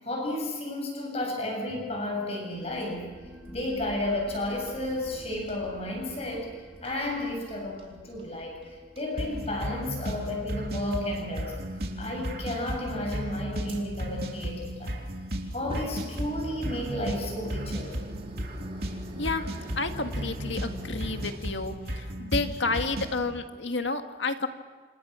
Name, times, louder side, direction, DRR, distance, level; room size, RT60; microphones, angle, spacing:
voice 1, 0.0-3.2 3.5-11.6 12.0-14.9 15.5-18.0, left 1 dB, 35° left, 1 dB, 7.9 m, -32 dB
sound 1, 2.5-13.7, equal, 10° right, 5.4 m, -50 dB
sound 2, 3.4-5.1 5.3-5.6 6.8-7.2 7.8-7.9 8.2-8.7 9.0-9.1 9.3-9.7 10.8-10.9 11.7-11.9 13.7-21.4, equal, 30° right, 4.1 m, -46 dB
sound 3, 9.2-23.2, equal, 55° right, 3.1 m, -35 dB
voice 2, 19.8-24.5, left 3 dB, 80° left, 6 dB, 1.9 m, -30 dB
29.0 x 27.5 x 6.3 m, 1.5 s
head